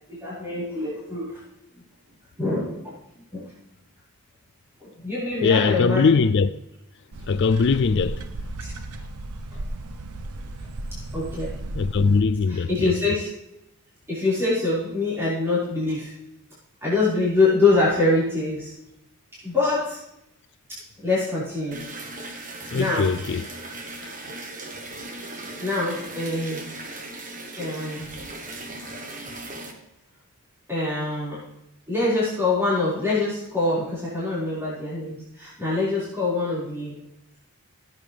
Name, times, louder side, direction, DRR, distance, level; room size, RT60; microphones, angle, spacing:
voice 1, 0.1-1.4 2.4-2.9 3.3-3.5 4.8-6.1 8.6-8.7 9.5-9.6 11.1-11.5 12.5-13.3 14.1-16.1 16.8-18.7 19.4-20.0 20.7-21.8 22.7-23.1 25.1-25.2 25.6-26.6 27.6-28.1 30.7-31.4 31.9-37.0, left 3 dB, 10° right, 5.1 m, -25 dB
voice 2, 5.4-6.5 7.3-8.2 11.7-13.1 22.7-23.5, left 5 dB, 50° left, 0.4 m, -21 dB
sound 1, 7.1-12.2, right 1 dB, 85° right, 0.8 m, -35 dB
sound 2, 21.7-29.7, right 2 dB, 35° right, 1.4 m, -38 dB
16.0 x 9.3 x 3.4 m
head